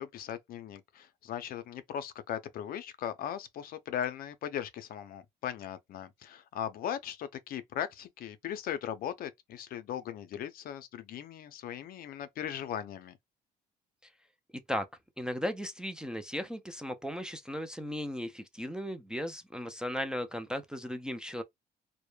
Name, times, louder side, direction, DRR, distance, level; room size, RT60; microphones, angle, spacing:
voice 1, 0.0-13.2, left 10 dB, 60° left, 0.5 m, -38 dB
voice 2, 15.2-21.4, equal, 5° right, 0.4 m, -36 dB
2.1 x 2.0 x 3.1 m
cardioid pair, 110°, 17 cm